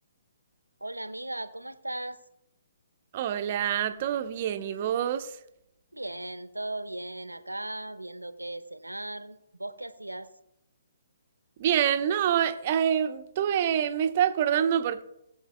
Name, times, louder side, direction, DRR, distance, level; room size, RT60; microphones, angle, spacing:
voice 1, 0.8-2.2 5.9-10.3, right 1 dB, 85° right, 1.0 m, -37 dB
voice 2, 3.1-5.4 11.6-15.0, right 9 dB, 40° right, 0.8 m, -26 dB
20.0 x 8.0 x 2.3 m
figure-of-eight pair, 130°, 0 cm